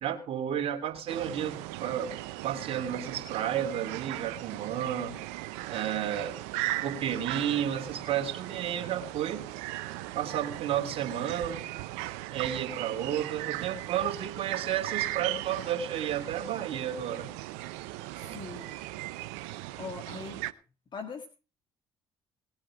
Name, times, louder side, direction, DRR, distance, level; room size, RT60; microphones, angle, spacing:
voice 1, 0.0-2.1 2.4-5.2 5.7-6.4 6.8-9.5 10.1-11.6 12.3-17.3, right 10 dB, 60° right, 4 dB, 2.9 m, -32 dB
sound 1, 1.1-20.5, right 17 dB, 75° right, 0.7 m, -38 dB
voice 2, 18.2-18.7 19.8-20.5 20.9-21.3, left 5 dB, 40° left, 5 dB, 1.9 m, -41 dB
19.5 x 7.6 x 4.9 m, 0.34 s
hypercardioid pair, 55°, 12 cm